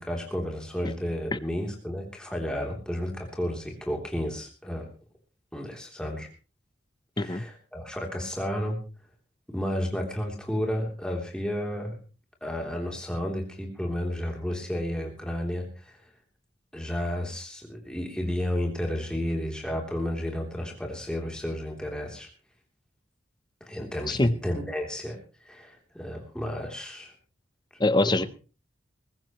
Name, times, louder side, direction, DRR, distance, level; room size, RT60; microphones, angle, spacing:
voice 1, 0.0-4.8 5.5-6.3 7.2-8.8 9.5-12.0 12.4-16.1 16.7-22.3 23.6-27.1 28.0-28.2, equal, 5° left, 1 dB, 3.2 m, -32 dB
voice 2, 27.8-28.2, left 2 dB, 20° left, 14 dB, 0.7 m, -23 dB
21.0 x 15.0 x 3.1 m, 0.34 s
head